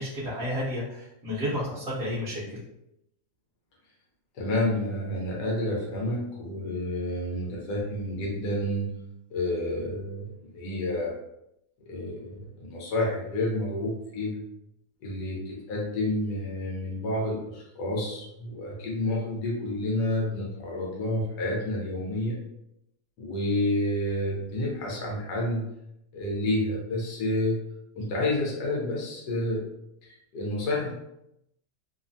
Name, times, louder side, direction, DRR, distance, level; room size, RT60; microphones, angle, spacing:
voice 1, 0.0-2.6, equal, 50° right, -11 dB, 0.8 m, -31 dB
voice 2, 4.3-8.9 9.3-11.1 11.9-14.4 15.0-22.4 23.2-25.6 26.1-27.6 27.9-29.6 30.0-30.9, left 1 dB, 85° left, -2 dB, 1.3 m, -29 dB
3.2 x 2.1 x 2.6 m, 0.82 s
omnidirectional pair, 1.7 m